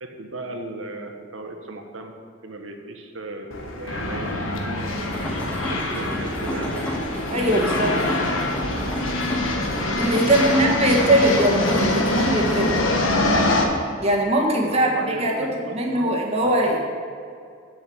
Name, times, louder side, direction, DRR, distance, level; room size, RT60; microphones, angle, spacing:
voice 1, 0.0-2.1 2.4-4.9 5.4-6.8 7.5-8.5 10.2-10.6 10.9-11.5 14.7-16.2 16.4-16.8, right 2 dB, 90° right, 4 dB, 1.3 m, -36 dB
sound 1, 3.5-13.6, left 2 dB, 85° left, 1.3 m, -24 dB
sound 2, 5.0-12.8, equal, 5° left, 1.4 m, -32 dB
voice 2, 7.3-7.9 10.0-12.7 14.0-15.3 15.7-16.8, right 1 dB, 30° right, -1 dB, 1.6 m, -21 dB
7.8 x 7.1 x 7.7 m, 2.3 s
head